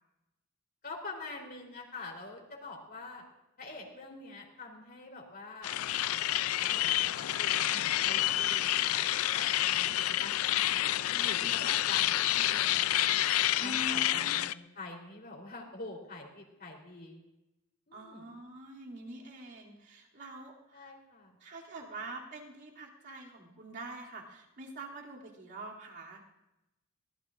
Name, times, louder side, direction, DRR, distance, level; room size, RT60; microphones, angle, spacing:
voice 1, 0.8-3.2 3.6-5.7 6.0-13.2 13.6-17.2 17.9-18.3 20.7-21.4, left 3 dB, 45° left, 0 dB, 3.7 m, -46 dB
sound 1, 5.6-14.5, left 13 dB, 90° left, 0.4 m, -29 dB
voice 2, 13.6-14.4 17.9-20.9 21.4-26.2, right 1 dB, 55° right, -3 dB, 2.9 m, -45 dB
23.5 x 18.5 x 2.6 m, 0.95 s
head